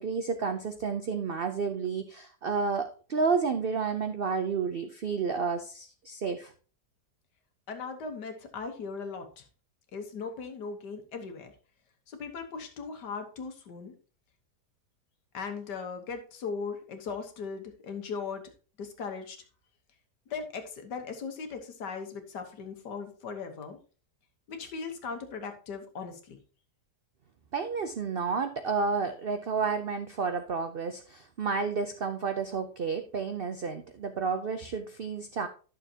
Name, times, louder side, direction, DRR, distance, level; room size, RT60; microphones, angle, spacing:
voice 1, 0.0-6.5 27.5-35.5, right 5 dB, 70° right, 8 dB, 0.5 m, -31 dB
voice 2, 7.7-9.5 9.9-11.5 12.1-13.9 15.3-18.5 18.8-19.4 20.3-23.8 24.5-26.4, left 5 dB, 80° left, 6 dB, 1.8 m, -38 dB
11.5 x 6.6 x 2.8 m, 0.37 s
omnidirectional pair, 1.8 m